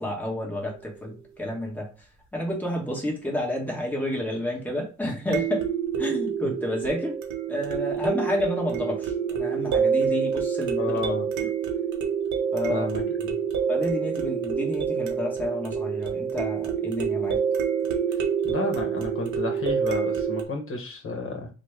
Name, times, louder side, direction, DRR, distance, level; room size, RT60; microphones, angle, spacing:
voice 1, 0.0-1.9 2.3-5.6 6.0-7.2 7.5-11.0 11.4-11.5 12.5-12.9 13.7-17.4, left 1 dB, 5° left, -2 dB, 1.2 m, -30 dB
sound 1, 0.6-0.7 5.3-20.4, right 7 dB, 70° right, 0.7 m, -27 dB
voice 2, 10.8-11.3 12.7-13.4 18.4-21.5, left 4 dB, 45° left, 2 dB, 1.1 m, -31 dB
3.2 x 2.1 x 3.2 m, 0.34 s
cardioid pair, 90°, 30 cm